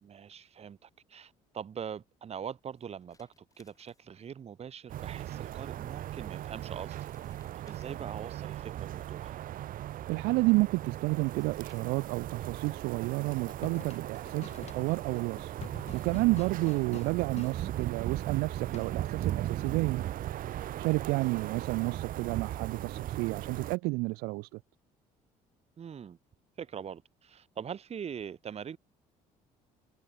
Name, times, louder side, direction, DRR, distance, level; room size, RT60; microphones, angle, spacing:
voice 1, 0.0-7.0 7.2-9.4 16.7-16.8 25.8-26.2 26.6-28.8, right 8 dB, 40° right, 1.6 m, -43 dB
sound 1, 2.7-4.5 5.9-6.0 6.5-8.5 9.7-9.8 10.8-10.9 11.1-11.8, left 3 dB, 20° left, 6.1 m, -67 dB
sound 2, 4.9-23.8, right 13 dB, 65° right, 1.4 m, -38 dB
voice 2, 10.1-15.6 15.9-20.0 20.5-24.6, right 25 dB, 80° right, 0.5 m, -30 dB
sound 3, 13.2-17.6 18.7-19.2, left 8 dB, 45° left, 1.6 m, -48 dB
supercardioid pair, 85°, 16 cm